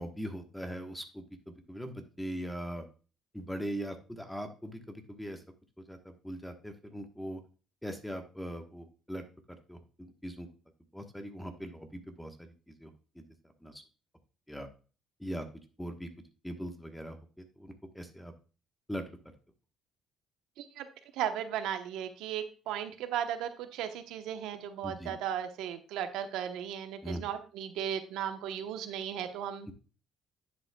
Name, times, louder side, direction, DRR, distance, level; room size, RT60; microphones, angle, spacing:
voice 1, 0.0-2.8 3.3-5.4 5.8-7.4 7.8-9.2 9.7-10.5 10.9-13.2 13.6-13.8 14.5-14.7 15.2-15.4 15.8-16.1 16.4-18.3 18.9-19.0 24.8-25.1 27.0-27.2, equal, 5° left, 6 dB, 1.2 m, -40 dB
voice 2, 21.1-29.7, right 9 dB, 85° right, 8 dB, 0.9 m, -36 dB
10.0 x 7.6 x 2.3 m, 0.35 s
cardioid pair, 120°, 0 cm